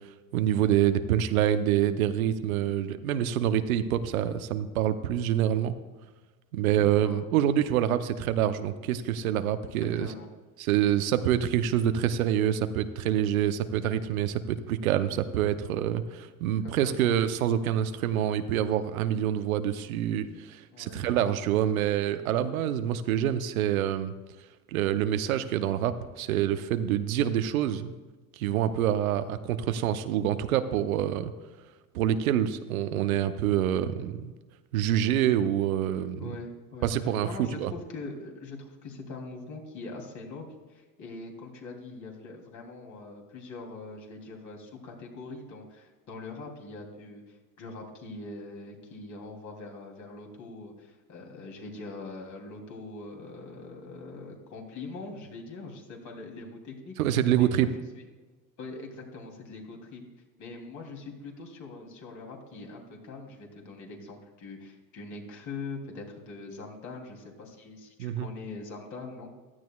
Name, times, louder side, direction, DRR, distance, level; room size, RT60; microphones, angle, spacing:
voice 1, 0.3-5.7 6.5-10.1 10.6-24.1 24.7-27.9 28.4-31.3 31.9-34.3 34.7-36.3 36.8-37.7 57.0-57.7 68.0-68.3, right 10 dB, 85° right, 10 dB, 0.8 m, -26 dB
voice 2, 6.8-7.2 10.0-10.3 16.6-17.1 20.7-21.1 36.2-36.9 37.2-56.9 57.4-58.0 58.6-60.0 60.4-69.3, left 3 dB, 45° left, 1 dB, 3.1 m, -42 dB
16.0 x 12.0 x 2.3 m, 1.3 s
hypercardioid pair, 95°, 41 cm